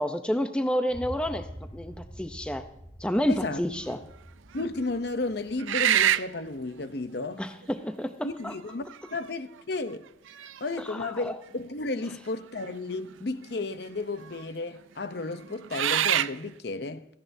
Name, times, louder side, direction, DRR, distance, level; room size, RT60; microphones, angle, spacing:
voice 1, 0.0-2.7 3.0-4.0 7.4-8.5 10.8-11.4, equal, 5° left, 0.6 m, -30 dB
sound 1, 0.9-7.1, equal, 25° left, 3.8 m, -46 dB
voice 2, 3.3-3.6 4.5-7.4 8.2-10.1 10.6-17.1, left 2 dB, 55° left, 0.7 m, -33 dB
sound 2, 3.5-3.9 4.6-4.7 5.6-6.4 7.6-7.7 8.7-9.2 9.6-9.7 10.3-11.0 12.6-12.7 13.0-13.6 14.3-14.4 15.3-16.4, right 11 dB, 90° right, 0.4 m, -26 dB
16.5 x 14.5 x 2.7 m
head